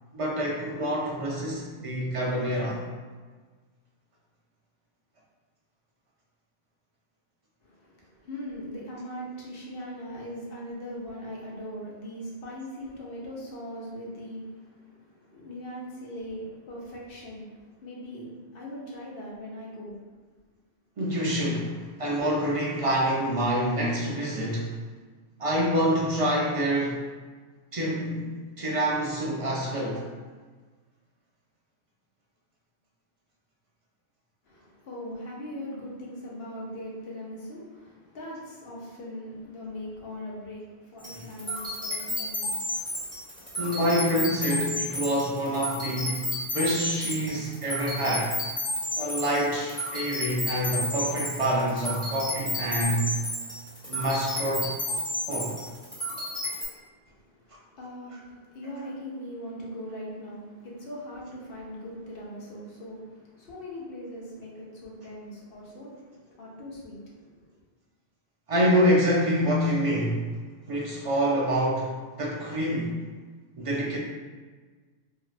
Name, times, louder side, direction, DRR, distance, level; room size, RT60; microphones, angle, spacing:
voice 1, 0.1-2.8 21.0-24.7 25.4-27.0 27.7-30.0 41.2-41.3 43.6-48.3 49.0-53.1 53.9-54.7 55.3-55.6 68.5-70.3 70.7-73.0 73.6-74.0, equal, 65° right, -4 dB, 0.3 m, -26 dB
voice 2, 7.6-20.1 34.5-43.6 56.4-56.5 56.8-67.4, equal, 60° left, -4 dB, 0.9 m, -40 dB
sound 1, 41.0-56.6, left 1 dB, 5° left, 1.3 m, -32 dB
2.7 x 2.3 x 3.2 m, 1.4 s
omnidirectional pair, 1.1 m